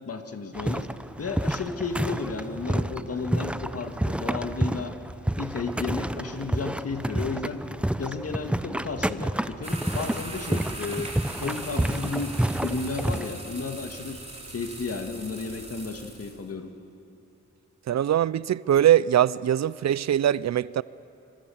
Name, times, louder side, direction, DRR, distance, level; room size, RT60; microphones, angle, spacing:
voice 1, 0.1-0.9 1.2-4.9 5.4-7.6 8.0-14.2 14.5-16.7, left 4 dB, 55° left, 2.0 m, -33 dB
sound 1, 0.5-13.3, right 1 dB, 5° right, 0.5 m, -29 dB
sound 2, 9.6-16.4, right 2 dB, 20° right, 3.3 m, -40 dB
voice 2, 17.9-20.8, right 11 dB, 65° right, 0.5 m, -22 dB
25.5 x 24.0 x 7.2 m
wide cardioid pair, 95°, 29 cm